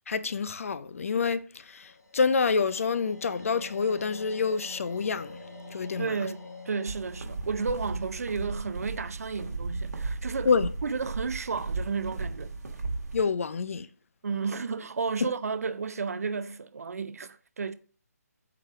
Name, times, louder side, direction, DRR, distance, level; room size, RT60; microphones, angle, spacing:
voice 1, 0.1-5.4 5.7-6.1 10.5-10.7 13.1-13.9 15.2-15.3, left 5 dB, 55° left, 0.6 m, -27 dB
sound 1, 1.8-8.9, left 2 dB, 80° left, 3.4 m, -47 dB
voice 2, 6.0-10.5 10.8-12.6 14.2-17.7, right 5 dB, 65° right, 0.7 m, -32 dB
sound 2, 6.9-13.2, right 3 dB, 80° right, 1.7 m, -35 dB
8.6 x 3.3 x 5.8 m
figure-of-eight pair, 150°, 9 cm